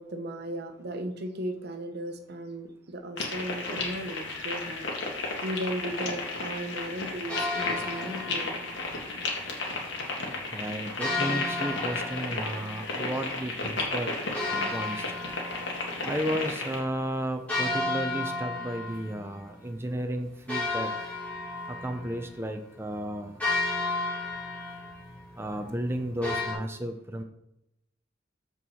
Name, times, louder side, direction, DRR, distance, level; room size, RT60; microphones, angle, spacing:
voice 1, 0.0-4.9 5.4-8.6, right 1 dB, 60° right, 7 dB, 1.0 m, -36 dB
sound 1, 3.2-16.8, left 3 dB, 65° left, 2.0 m, -34 dB
sound 2, 7.3-9.0 11.0-13.4 14.3-16.3 16.6-16.7 17.5-19.5 19.9-20.0 20.5-26.5, left 2 dB, 10° left, 3.9 m, -33 dB
voice 2, 10.5-14.1 14.5-15.0 16.0-20.9 21.7-23.4 25.4-27.2, right 1 dB, 15° right, 5 dB, 0.6 m, -33 dB
13.5 x 4.6 x 4.2 m, 0.86 s
head